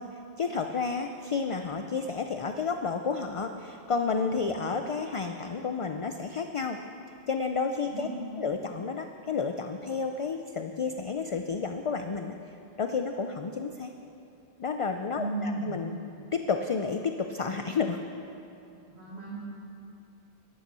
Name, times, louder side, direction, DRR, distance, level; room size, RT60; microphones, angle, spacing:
voice 1, 0.0-6.8 7.3-8.1 8.4-13.9 14.6-16.0 16.3-18.0, left 5 dB, 45° left, 6 dB, 0.4 m, -31 dB
voice 2, 7.8-8.4 15.2-15.8 18.9-19.4, right 2 dB, 85° right, -10 dB, 3.1 m, -35 dB
12.0 x 11.0 x 6.8 m, 2.8 s
omnidirectional pair, 1.1 m